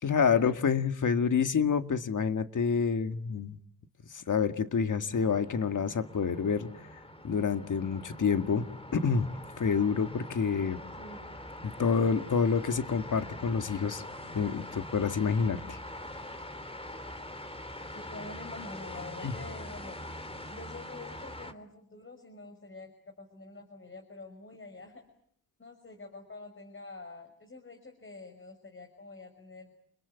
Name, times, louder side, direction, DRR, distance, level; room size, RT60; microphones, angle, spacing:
voice 1, 0.0-3.6 4.1-6.7 7.2-8.7 8.9-9.3 9.6-10.8 11.6-14.0 14.3-15.8 19.2-19.3, left 6 dB, 55° left, 8 dB, 2.0 m, -28 dB
sound 1, 5.1-21.5, left 1 dB, 15° left, 3.1 m, -44 dB
voice 2, 17.9-20.0 20.5-25.0 25.6-29.7, left 3 dB, 30° left, 5 dB, 6.2 m, -47 dB
29.5 x 22.0 x 8.3 m, 0.68 s
cardioid pair, 65°, 38 cm